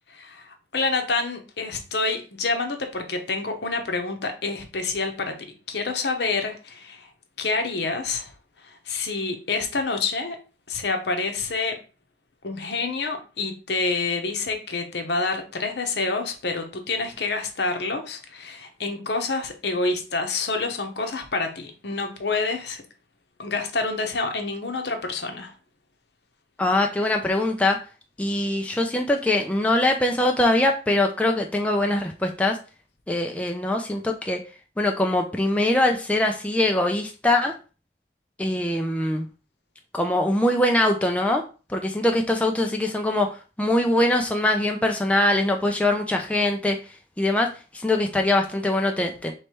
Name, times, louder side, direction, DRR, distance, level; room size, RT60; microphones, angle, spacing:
voice 1, 0.1-7.1 7.4-10.4 10.7-11.8 12.4-22.8 23.4-25.5, left 3 dB, 75° left, 5 dB, 0.9 m, -28 dB
voice 2, 26.6-27.8 28.2-32.6 33.1-34.4 34.8-37.5 38.4-39.3 39.9-41.4 41.7-46.8 47.2-47.5 47.7-49.3, left 1 dB, 5° left, 2 dB, 0.4 m, -22 dB
3.2 x 3.1 x 4.4 m, 0.34 s
head